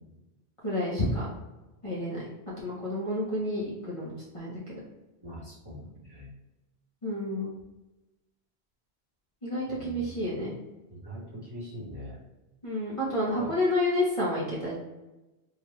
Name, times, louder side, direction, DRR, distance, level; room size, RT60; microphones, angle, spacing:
voice 1, 0.6-1.3 1.8-2.2 2.6-4.8 7.0-7.5 9.4-10.5 12.6-14.7, left 1 dB, 30° left, -7 dB, 1.0 m, -30 dB
voice 2, 5.2-6.3 9.8-10.1 10.9-12.2 13.4-13.5, equal, 25° right, -9 dB, 1.1 m, -42 dB
3.8 x 2.4 x 3.2 m, 1.0 s
omnidirectional pair, 1.1 m